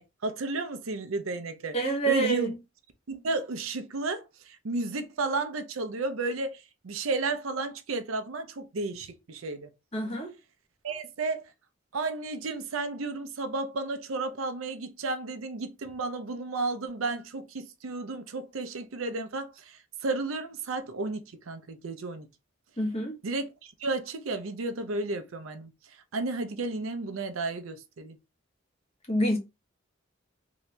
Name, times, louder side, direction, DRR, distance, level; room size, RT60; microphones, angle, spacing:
voice 1, 0.0-2.5 3.1-9.7 10.8-11.4 11.9-22.3 23.2-25.7 26.1-28.2, right 3 dB, 90° right, 0.6 m, -33 dB
voice 2, 1.7-2.5 9.9-10.3 22.8-23.2 29.1-29.4, right 2 dB, 30° left, 1.1 m, -27 dB
3.0 x 2.8 x 3.2 m
head